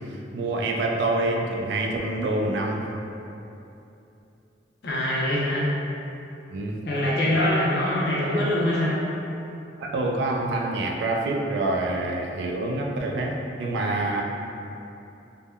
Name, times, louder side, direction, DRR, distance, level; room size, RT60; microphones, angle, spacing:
voice 1, 0.1-2.9 6.5-6.8 9.8-14.2, right 2 dB, 70° right, 0 dB, 0.3 m, -26 dB
voice 2, 4.8-5.7 6.8-9.0, left 1 dB, 65° left, -6 dB, 0.6 m, -23 dB
3.4 x 2.1 x 2.2 m, 2.8 s
head